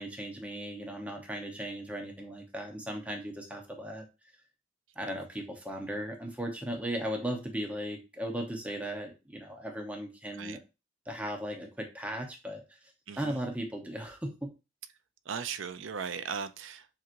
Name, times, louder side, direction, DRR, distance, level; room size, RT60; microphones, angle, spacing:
voice 1, 0.0-4.0 5.0-10.6 11.1-12.9 13.2-14.5, right 1 dB, 5° right, 0.8 m, -37 dB
voice 2, 13.1-13.4 15.3-16.9, right 6 dB, 70° right, 0.5 m, -37 dB
7.1 x 2.9 x 2.5 m
head